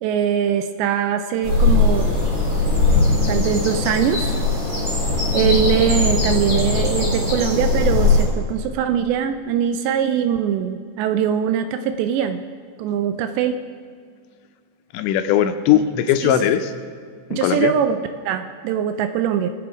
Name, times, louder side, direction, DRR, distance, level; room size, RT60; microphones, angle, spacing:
voice 1, 0.0-2.1 3.3-4.4 5.3-12.4 12.8-13.7 15.7-15.8 16.2-16.4 17.3-19.5, right 8 dB, 80° right, 9 dB, 2.6 m, -22 dB
sound 1, 1.4-8.2, left 3 dB, 25° right, 3.8 m, -19 dB
voice 2, 14.9-16.7 17.3-17.7, left 10 dB, 80° left, 9 dB, 2.8 m, -19 dB
19.5 x 8.6 x 4.9 m, 2.1 s
omnidirectional pair, 5.3 m